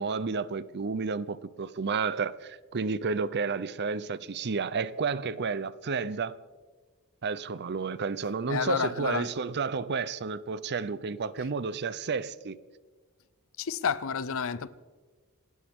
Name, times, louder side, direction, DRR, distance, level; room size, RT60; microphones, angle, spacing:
voice 1, 0.0-6.4 7.2-12.6, right 5 dB, 50° right, 0.6 m, -31 dB
voice 2, 8.5-9.3 13.6-14.7, left 6 dB, 65° left, 0.7 m, -30 dB
27.0 x 13.0 x 3.6 m
head